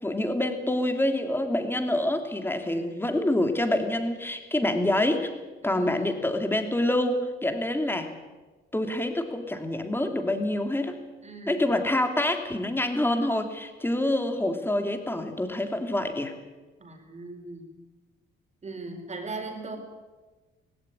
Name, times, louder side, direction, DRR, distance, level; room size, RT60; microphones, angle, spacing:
voice 1, 0.0-5.3 5.6-8.1 8.7-11.0 11.5-16.3, left 1 dB, 10° left, 6 dB, 3.0 m, -26 dB
voice 2, 2.6-3.0 5.6-6.2 11.2-11.7 16.8-17.7 18.6-19.8, right 3 dB, 35° right, 4 dB, 4.7 m, -39 dB
18.0 x 16.5 x 9.9 m, 1.3 s
cardioid pair, 90°, 20 cm